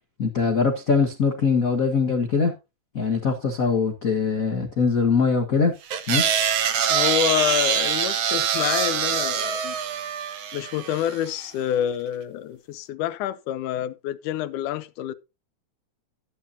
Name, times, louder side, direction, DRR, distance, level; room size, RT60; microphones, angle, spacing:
voice 1, 0.2-2.5 2.9-5.7 6.1-6.2, left 5 dB, 50° left, 1.0 m, -22 dB
sound 1, 5.9-11.3, right 8 dB, 60° right, 1.4 m, -24 dB
voice 2, 6.9-9.8 10.5-15.1, left 11 dB, 85° left, 2.2 m, -27 dB
13.0 x 9.6 x 2.7 m
omnidirectional pair, 3.5 m